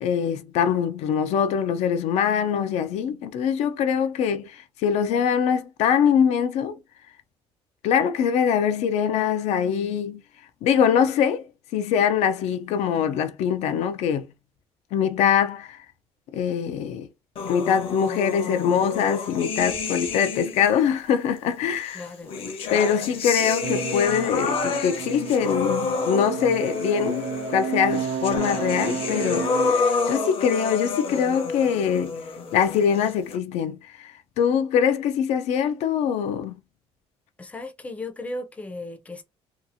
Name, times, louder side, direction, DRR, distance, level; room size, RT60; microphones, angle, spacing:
voice 1, 0.0-6.8 7.8-10.2 10.6-11.5 11.7-14.3 14.9-15.8 16.3-17.1 17.5-22.1 22.7-32.2 32.5-36.5, left 8 dB, 80° left, 0.4 m, -23 dB
sound 1, 17.4-20.8 21.8-33.4, left 4 dB, 55° left, 0.8 m, -29 dB
voice 2, 21.9-22.3 37.4-39.2, left 2 dB, 10° left, 0.5 m, -35 dB
sound 2, 23.6-29.7, right 7 dB, 80° right, 0.4 m, -32 dB
2.8 x 2.3 x 2.5 m
cardioid pair, 145°, 11 cm